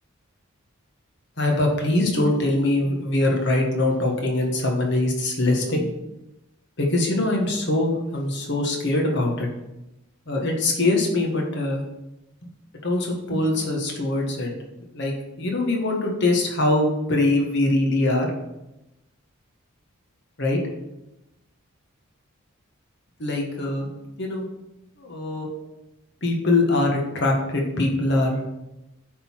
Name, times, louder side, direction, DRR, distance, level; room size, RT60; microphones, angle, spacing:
voice 1, 1.4-5.9 6.8-9.5 10.3-11.8 12.8-14.5 14.9-18.3 20.4-20.6 23.2-23.9 24.2-24.4 25.0-25.5 26.2-28.4, left 2 dB, 50° left, 0 dB, 1.4 m, -23 dB
8.7 x 3.9 x 4.5 m, 0.94 s
head